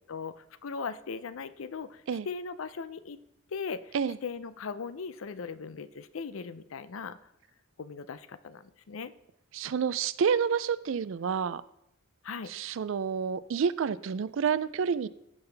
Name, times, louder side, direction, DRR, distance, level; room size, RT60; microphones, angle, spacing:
voice 1, 0.1-3.2 3.5-4.0 4.2-7.2 7.8-9.1 12.2-12.5, left 5 dB, 80° left, 14 dB, 0.5 m, -38 dB
voice 2, 9.5-11.6 12.5-15.1, right 6 dB, 70° right, 17 dB, 0.4 m, -29 dB
16.5 x 5.6 x 3.4 m, 0.82 s
head